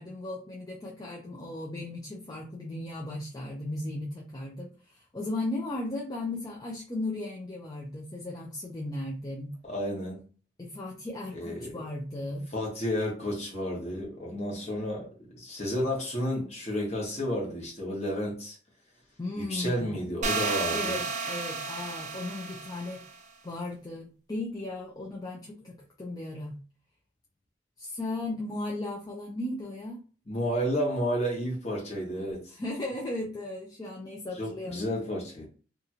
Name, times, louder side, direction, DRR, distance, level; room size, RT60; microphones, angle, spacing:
voice 1, 0.0-9.5 10.6-12.5 19.2-19.9 20.7-21.0 21.3-26.6 27.8-30.0 32.6-34.9, left 2 dB, 20° left, 0.5 m, -36 dB
voice 2, 9.6-10.2 11.3-11.8 12.5-15.1 15.4-18.6 19.4-21.0 30.3-32.6 34.3-35.5, equal, 35° left, 1.2 m, -31 dB
sound 1, 20.2-23.1, right 4 dB, 40° right, 0.5 m, -32 dB
2.8 x 2.4 x 2.8 m
head